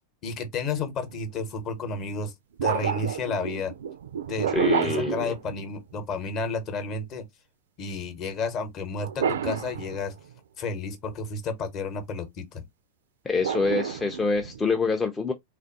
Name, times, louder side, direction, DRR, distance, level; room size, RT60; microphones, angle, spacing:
voice 1, 0.2-2.3 2.6-3.7 4.3-4.5 4.8-7.2 7.8-10.2 10.6-12.7, left 3 dB, 35° left, 0.9 m, -31 dB
sound 1, 1.0-1.2 2.6-6.0 9.0-10.4 13.4-14.7, right 8 dB, 65° right, 0.4 m, -30 dB
voice 2, 4.5-5.3 13.2-15.3, left 4 dB, 15° left, 0.4 m, -26 dB
3.4 x 2.4 x 2.5 m
figure-of-eight pair, 90°, 0 cm